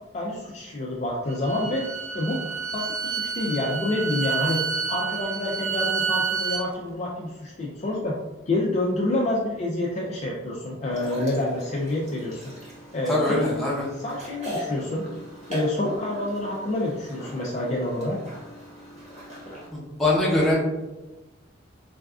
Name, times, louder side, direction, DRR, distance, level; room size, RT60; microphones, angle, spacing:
voice 1, 0.1-1.9 2.1-2.4 2.7-8.2 8.5-12.4 12.9-13.6 13.9-15.0 15.5-18.2, left 1 dB, 35° left, -4 dB, 0.3 m, -28 dB
Bowed string instrument, 1.3-6.6, right 5 dB, 85° right, 0.4 m, -29 dB
sound 1, 10.9-19.7, equal, 35° right, 1.1 m, -39 dB
voice 2, 13.1-13.9 19.7-20.5, left 2 dB, ahead, -8 dB, 0.8 m, -22 dB
4.0 x 2.4 x 2.3 m, 1.1 s
head